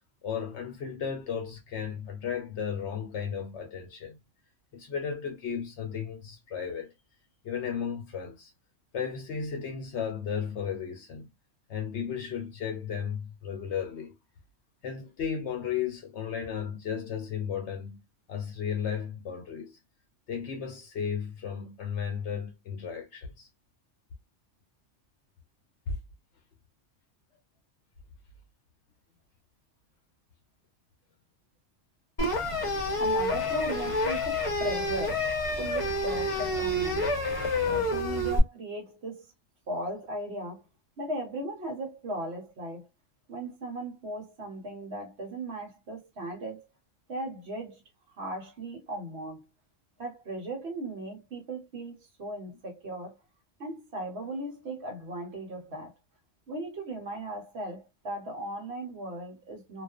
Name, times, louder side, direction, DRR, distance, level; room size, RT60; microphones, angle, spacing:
voice 1, 0.2-4.2 4.7-6.9 7.4-8.5 8.9-11.3 11.7-14.1 14.8-18.0 18.3-19.8 20.3-23.5 25.9-26.0, left 7 dB, 65° left, 0.9 m, -34 dB
sound 1, 32.2-38.4, left 1 dB, 30° left, 0.8 m, -28 dB
voice 2, 33.0-35.3 35.6-37.2 37.6-39.3 39.7-40.6 41.0-42.9 43.3-46.7 47.1-47.8 48.2-49.5 50.0-53.1 53.6-55.9 56.5-59.8, right 1 dB, 60° right, 1.2 m, -37 dB
2.4 x 2.4 x 2.3 m
omnidirectional pair, 1.3 m